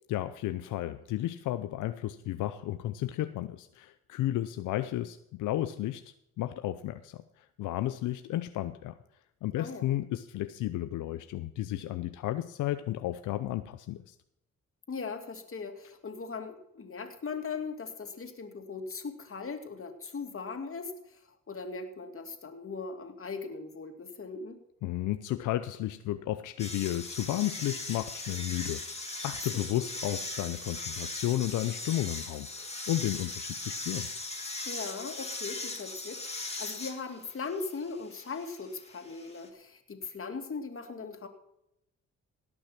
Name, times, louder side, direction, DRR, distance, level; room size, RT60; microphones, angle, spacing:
voice 1, 0.1-6.0 6.4-9.0 9.4-14.1 24.8-34.1, left 14 dB, 90° left, 11 dB, 0.6 m, -33 dB
voice 2, 9.6-9.9 14.9-21.2 21.5-24.6 29.5-29.7 34.6-41.3, left 4 dB, 45° left, 6 dB, 2.6 m, -39 dB
sound 1, 26.6-39.5, left 2 dB, 20° left, 3.0 m, -39 dB
17.5 x 6.3 x 5.9 m, 0.79 s
supercardioid pair, 60°, 30 cm